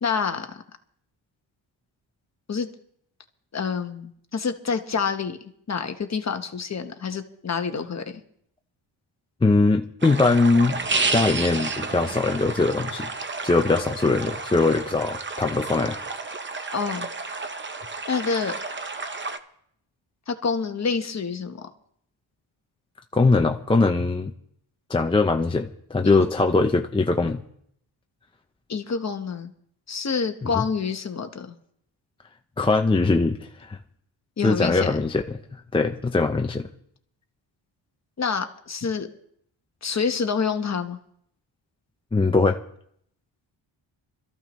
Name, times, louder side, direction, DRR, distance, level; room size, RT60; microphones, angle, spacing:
voice 1, 0.0-0.6 2.5-2.7 3.5-8.2 16.7-17.1 18.1-18.5 20.3-21.6 26.0-26.2 28.7-29.5 29.9-31.5 34.4-35.0 38.2-39.1 39.8-41.0, left 5 dB, 35° left, 7 dB, 1.0 m, -27 dB
voice 2, 9.4-10.8 11.1-13.1 13.4-16.0 23.1-24.3 24.9-27.4 30.4-30.7 32.6-33.8 34.4-36.7 42.1-42.6, left 3 dB, 10° left, 4 dB, 0.5 m, -21 dB
sound 1, 10.0-19.4, right 3 dB, 25° right, 0.7 m, -31 dB
25.0 x 14.0 x 3.1 m, 0.69 s
wide cardioid pair, 150°, 47 cm